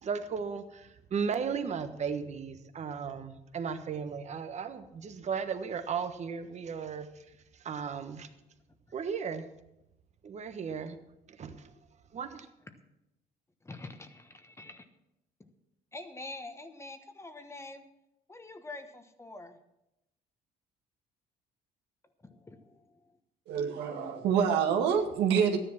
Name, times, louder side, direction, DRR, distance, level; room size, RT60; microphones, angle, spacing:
voice 1, 0.0-7.1 7.6-8.3 8.9-9.5 10.2-11.0 11.4-11.7 12.1-12.5, right 6 dB, 40° right, 9 dB, 1.3 m, -35 dB
voice 2, 13.6-14.8 15.4-15.5 15.9-17.9 18.3-19.6 22.2-23.2, left 2 dB, 15° left, 8 dB, 1.2 m, -46 dB
voice 3, 23.5-25.6, right 7 dB, 85° right, 4 dB, 1.9 m, -26 dB
13.5 x 10.0 x 6.0 m, 0.87 s
cardioid pair, 110°, 17 cm